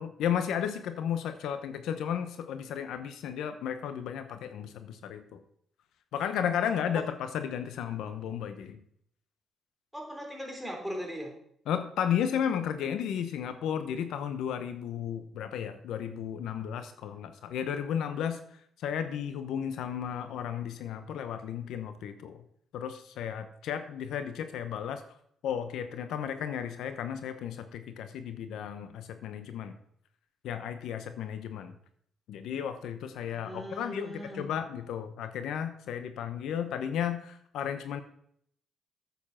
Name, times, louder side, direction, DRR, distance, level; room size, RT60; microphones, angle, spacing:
voice 1, 0.0-5.4 6.1-8.8 11.7-18.4 18.8-22.4 22.7-25.0 25.4-29.7 30.4-31.7 32.3-38.0, left 8 dB, 80° left, 9 dB, 0.9 m, -34 dB
voice 2, 9.9-11.3 33.2-34.5, equal, 5° right, 0 dB, 3.5 m, -39 dB
9.2 x 7.2 x 5.8 m, 0.67 s
cardioid pair, 90°, 0 cm